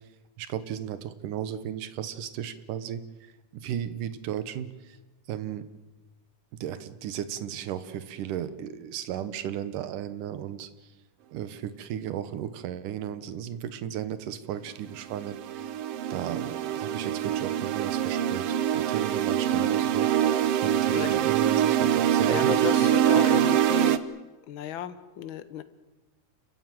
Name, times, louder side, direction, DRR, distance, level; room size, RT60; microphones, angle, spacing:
voice 1, 0.4-5.0 5.3-5.7 6.6-10.7 11.3-15.8 16.1-22.7 23.3-23.5, right 10 dB, 85° right, 12 dB, 2.8 m, -35 dB
sound 1, 14.9-24.0, right 10 dB, 65° right, 1.6 m, -24 dB
voice 2, 22.2-24.0 24.5-25.6, left 10 dB, 65° left, 12 dB, 1.3 m, -34 dB
29.0 x 15.0 x 9.3 m, 1.1 s
omnidirectional pair, 3.6 m